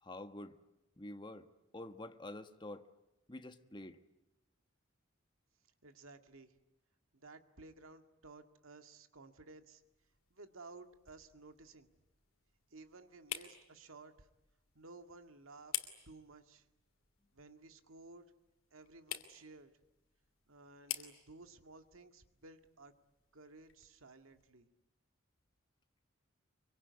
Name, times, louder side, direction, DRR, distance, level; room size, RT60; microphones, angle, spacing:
voice 1, 0.0-0.6 1.0-1.5 1.7-2.9 3.3-4.0, left 1 dB, 20° left, 1.3 m, -47 dB
voice 2, 5.8-6.5 7.1-9.8 10.3-11.9 12.7-14.3 14.7-15.7 16.1-16.7 17.3-18.3 18.7-19.7 20.5-22.9 23.3-24.7, right 3 dB, 80° right, 2.0 m, -56 dB
sound 1, 9.7-24.5, left 11 dB, 80° left, 2.8 m, -50 dB
25.5 x 24.0 x 9.6 m
head